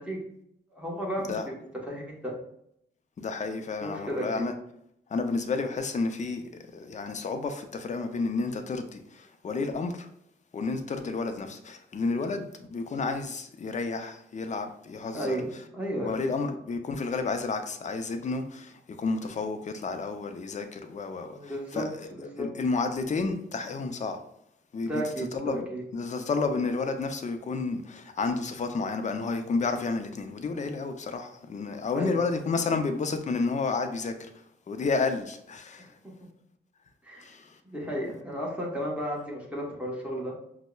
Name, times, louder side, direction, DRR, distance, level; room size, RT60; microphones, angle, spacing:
voice 1, 0.7-2.3 3.8-4.4 10.9-11.1 15.1-15.5 15.7-16.3 21.3-22.5 24.8-25.8 31.9-32.2 37.0-37.3 37.6-40.3, equal, 5° right, 1.0 m, -33 dB
voice 2, 3.2-4.5 5.1-6.4 6.7-10.1 10.5-15.4 16.0-24.2 24.7-25.6 25.9-34.3 34.7-35.9 37.2-37.6, left 4 dB, 40° left, 0.4 m, -31 dB
5.3 x 2.0 x 2.2 m
wide cardioid pair, 105°, 19 cm